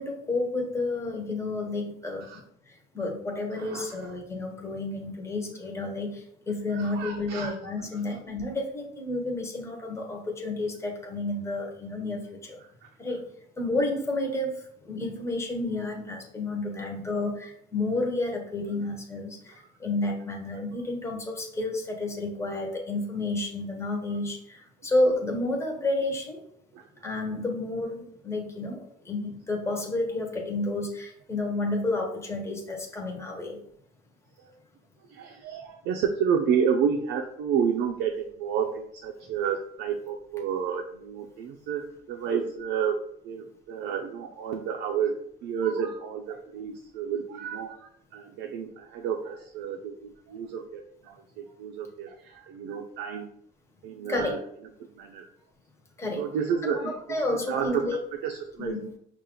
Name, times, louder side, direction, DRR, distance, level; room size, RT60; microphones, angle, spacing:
voice 1, 0.0-2.2 2.9-12.6 13.0-13.2 13.6-14.6 14.8-19.5 19.8-26.4 27.0-33.6 54.1-54.4 56.0-56.2 57.1-58.0 58.6-58.9, left 2 dB, 15° left, 1 dB, 1.1 m, -30 dB
voice 2, 3.6-4.1 6.7-7.6 7.9-8.2 12.8-12.9 19.5-19.7 24.1-24.2 26.7-26.9 34.4-34.5 35.1-43.0 43.2-45.2 45.4-53.3 53.8-54.4 55.0-55.3 56.2-58.8, right 7 dB, 90° right, 2 dB, 0.5 m, -30 dB
5.6 x 2.5 x 3.8 m, 0.71 s
cardioid pair, 110°, 17 cm